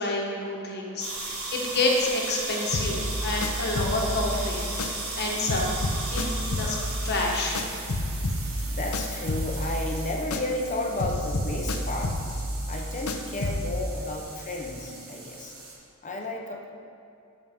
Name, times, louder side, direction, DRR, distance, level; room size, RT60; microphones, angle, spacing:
voice 1, 0.0-4.6 5.2-5.7 6.1-6.8 7.0-7.6, left 2 dB, 50° left, -1 dB, 1.4 m, -28 dB
voice 2, 0.8-1.3 8.4-12.2 12.7-15.5 16.0-16.7, left 1 dB, 35° left, 1 dB, 0.9 m, -33 dB
sound 1, 1.0-15.7, right 2 dB, 85° right, 1.8 m, -37 dB
sound 2, 2.7-5.2 5.5-10.7 11.0-13.8, left 1 dB, 85° left, 0.7 m, -31 dB
12.5 x 6.0 x 3.7 m, 2.5 s
head